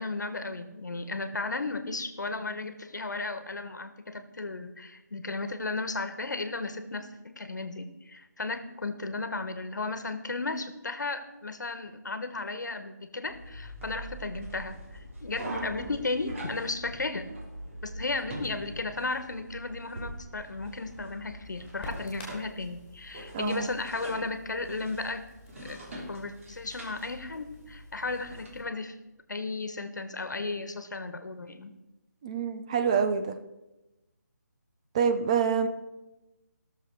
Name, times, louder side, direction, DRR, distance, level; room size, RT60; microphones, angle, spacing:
voice 1, 0.0-17.3 17.8-25.3 25.5-25.8 26.1-29.0 29.3-31.7, left 3 dB, 80° left, 10 dB, 1.4 m, -35 dB
sound 1, 13.3-28.5, right 1 dB, 45° right, 3.0 m, -43 dB
Crackle, 20.4-28.6, left 2 dB, 15° left, 3.1 m, -48 dB
voice 2, 23.3-23.7 32.2-33.4 34.9-35.7, right 6 dB, 20° right, 7 dB, 0.5 m, -26 dB
17.0 x 6.9 x 4.7 m, 1.0 s
figure-of-eight pair, 160°, 10 cm